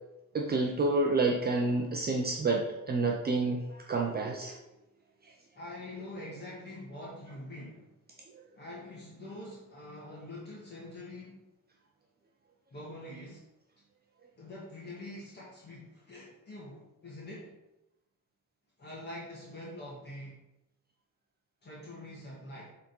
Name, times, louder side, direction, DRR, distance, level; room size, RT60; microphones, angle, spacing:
voice 1, 0.3-4.6, right 3 dB, 30° right, 0 dB, 0.6 m, -29 dB
voice 2, 5.5-7.9 8.5-11.4 12.7-13.4 14.4-17.5 18.8-20.4 21.6-22.7, left 1 dB, 30° left, -6 dB, 1.8 m, -45 dB
7.2 x 3.9 x 5.4 m, 0.92 s
cardioid pair, 170°, 33 cm